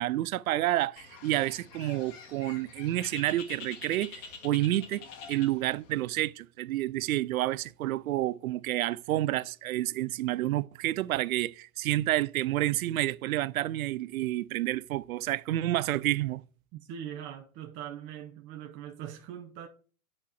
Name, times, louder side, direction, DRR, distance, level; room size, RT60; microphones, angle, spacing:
voice 1, 0.0-16.4, right 15 dB, 70° right, 0.5 m, -29 dB
Bird, 1.0-6.0, left 5 dB, 60° left, 2.1 m, -46 dB
voice 2, 16.7-19.7, right 10 dB, 25° right, 0.7 m, -41 dB
8.8 x 4.3 x 4.4 m
hypercardioid pair, 130°, 44 cm